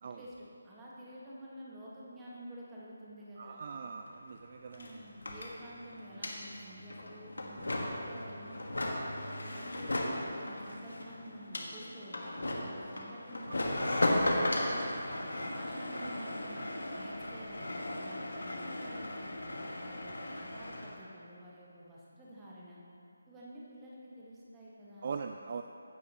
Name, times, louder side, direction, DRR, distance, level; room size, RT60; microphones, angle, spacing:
voice 1, 0.0-3.6 4.7-9.0 9.4-14.5 15.1-16.7 16.9-22.8 23.3-25.1, equal, 10° right, -7 dB, 1.6 m, -50 dB
voice 2, 3.4-4.9 13.5-13.6 25.0-25.6, right 5 dB, 40° right, 6 dB, 0.3 m, -41 dB
sound 1, 4.1-4.2 4.3-21.0, left 1 dB, 75° left, 1.4 m, -36 dB
15.0 x 8.3 x 3.0 m, 2.7 s
figure-of-eight pair, 155°, 0 cm